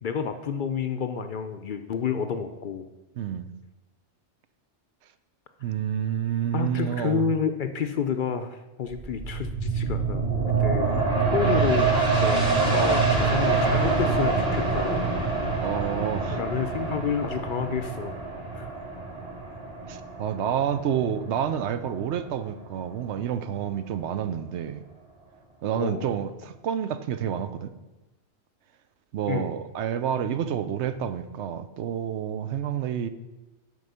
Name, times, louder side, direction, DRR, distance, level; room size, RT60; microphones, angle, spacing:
voice 1, 0.0-2.8 6.5-10.3 10.6-11.0 11.3-15.1 16.3-18.2 18.5-18.7 25.8-26.1 29.3-29.5, left 6 dB, 55° left, 8 dB, 0.6 m, -30 dB
voice 2, 3.2-3.5 5.6-7.3 15.6-16.4 19.9-24.8 25.6-27.7 29.1-33.1, right 9 dB, 75° right, 10 dB, 0.9 m, -29 dB
sound 1, 8.9-22.2 22.6-22.7, right 4 dB, 40° right, 2.3 m, -25 dB
7.8 x 5.4 x 6.7 m, 1.1 s
omnidirectional pair, 1.2 m